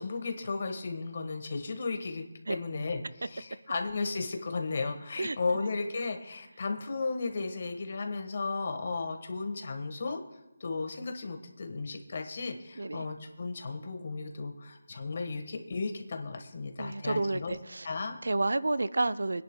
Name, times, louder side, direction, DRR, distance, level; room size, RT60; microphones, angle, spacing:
voice 1, 0.0-10.2 10.6-17.6 17.8-18.2, left 3 dB, 45° left, 5 dB, 1.4 m, -35 dB
voice 2, 5.2-5.6 12.8-13.1 16.8-17.9 18.2-19.4, right 2 dB, 85° right, 15 dB, 0.5 m, -30 dB
25.5 x 10.5 x 2.2 m, 1.0 s
figure-of-eight pair, 170°, 0 cm